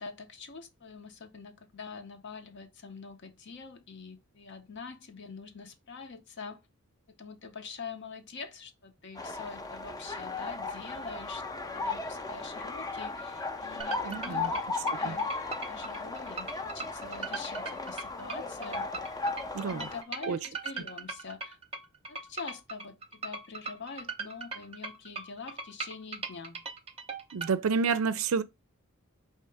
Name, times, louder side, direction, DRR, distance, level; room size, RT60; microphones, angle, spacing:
voice 1, 0.0-6.6 7.1-11.4 11.7-14.7 15.0-15.3 15.7-18.9 19.6-21.6 22.1-26.7, left 5 dB, 55° left, 0.7 m, -45 dB
sound 1, 9.2-20.0, left 3 dB, 20° left, 0.5 m, -36 dB
sound 2, 13.8-27.5, right 4 dB, 30° right, 0.6 m, -39 dB
voice 2, 14.0-14.5 15.0-15.2 19.5-19.9 20.3-20.4 27.3-28.4, right 5 dB, 80° right, 0.4 m, -29 dB
4.6 x 2.8 x 3.4 m
head